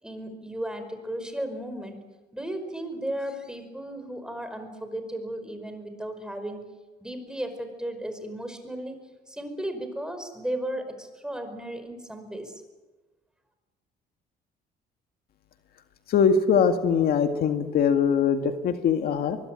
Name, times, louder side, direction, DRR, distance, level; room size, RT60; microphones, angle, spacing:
voice 1, 0.0-2.0 2.3-6.6 7.0-9.0 9.3-12.6, right 1 dB, 5° right, 8 dB, 5.1 m, -35 dB
voice 2, 16.1-19.4, left 6 dB, 65° left, 6 dB, 2.0 m, -22 dB
23.5 x 22.5 x 9.0 m, 1.2 s
cardioid pair, 110°, 17 cm